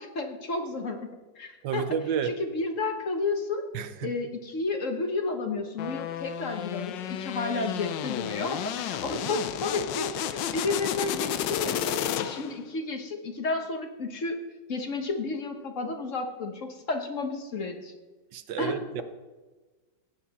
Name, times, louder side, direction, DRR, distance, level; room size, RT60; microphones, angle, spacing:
voice 1, 0.0-1.9 2.2-3.7 4.0-14.4 14.7-17.9 18.6-19.0, left 3 dB, 50° left, 5 dB, 1.4 m, -32 dB
voice 2, 1.6-2.3 3.7-4.1 9.3-9.4 18.3-19.0, right 8 dB, 80° right, 10 dB, 1.5 m, -31 dB
sound 1, 5.8-12.6, left 10 dB, 90° left, 1.4 m, -32 dB
15.5 x 9.7 x 4.2 m, 1.3 s
omnidirectional pair, 1.9 m